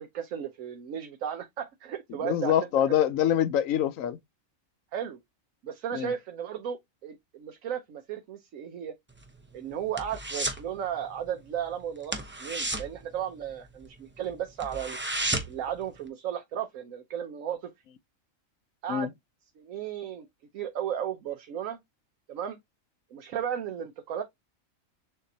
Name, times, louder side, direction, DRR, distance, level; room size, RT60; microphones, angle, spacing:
voice 1, 0.0-2.5 2.9-3.0 4.9-5.2 5.6-8.9 9.5-15.0 15.5-17.7 18.8-19.1 19.6-20.3 20.5-21.8 22.3-22.6 23.1-24.2, right 9 dB, 80° right, 1.1 m, -35 dB
voice 2, 2.2-4.2 5.9-6.1 18.9-19.1, left 10 dB, 80° left, 1.0 m, -25 dB
sound 1, 9.1-10.7 11.0-11.3 11.5-11.7 12.0-13.9 14.3-14.4 14.6-15.7 16.1-16.2, right 2 dB, 15° right, 0.4 m, -32 dB
6.7 x 2.8 x 2.6 m
omnidirectional pair, 1.4 m